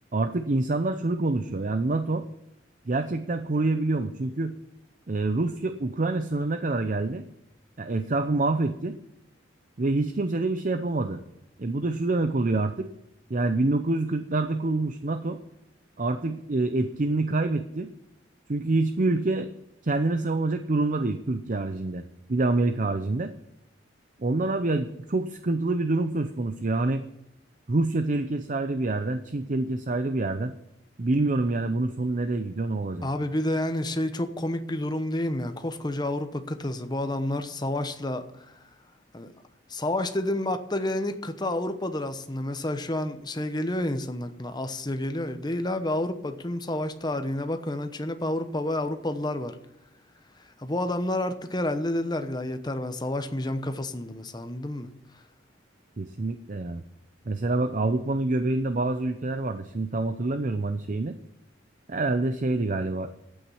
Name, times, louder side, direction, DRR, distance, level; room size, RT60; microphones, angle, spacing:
voice 1, 0.1-2.2 2.9-4.5 5.1-7.2 7.8-9.0 9.8-11.2 11.6-12.9 13.3-15.4 16.0-17.9 18.5-19.5 19.8-22.0 22.3-23.3 24.2-27.0 27.7-30.5 31.0-33.1 56.0-56.8 57.3-61.1 61.9-63.1, right 2 dB, 45° right, 10 dB, 0.6 m, -26 dB
voice 2, 33.0-38.5 39.1-39.3 39.7-49.6 50.6-54.9, left 1 dB, 20° left, 8 dB, 1.0 m, -29 dB
11.5 x 8.8 x 7.1 m, 0.84 s
head